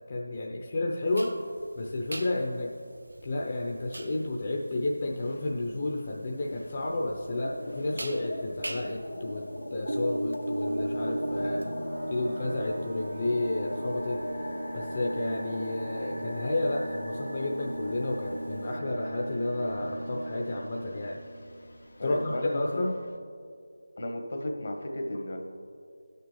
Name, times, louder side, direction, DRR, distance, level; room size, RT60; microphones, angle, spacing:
voice 1, 0.1-1.4 1.8-2.7 3.2-9.5 9.7-11.6 12.1-14.2 14.7-21.2 22.0-22.9, left 2 dB, 40° left, -2 dB, 0.7 m, -31 dB
sound 1, 1.1-18.8, right 1 dB, 85° right, 0.8 m, -39 dB
sound 2, 4.0-4.8 5.1-23.2, left 1 dB, 85° left, 1.2 m, -41 dB
sound 3, 10.7-22.0, right 1 dB, 50° right, 0.6 m, -39 dB
voice 2, 22.0-22.8 24.0-25.4, left 1 dB, 60° left, 4 dB, 1.2 m, -34 dB
16.5 x 6.6 x 3.2 m, 2.3 s
figure-of-eight pair, 170°, 0 cm